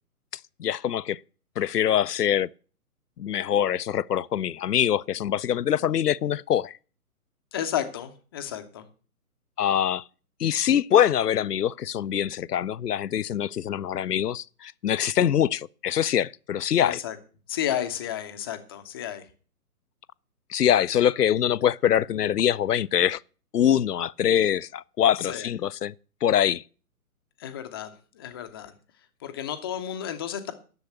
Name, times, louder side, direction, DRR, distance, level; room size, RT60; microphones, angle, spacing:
voice 1, 0.6-1.2 1.6-2.5 3.2-6.7 9.6-10.0 10.4-17.0 20.5-23.2 23.5-25.9 26.2-26.6, left 10 dB, 80° left, 0.5 m, -24 dB
voice 2, 7.5-8.8 16.8-17.2 17.5-19.3 25.2-25.5 27.4-28.7 29.2-30.5, left 10 dB, 15° left, 0.7 m, -32 dB
11.0 x 7.0 x 8.0 m
figure-of-eight pair, 130°, 46 cm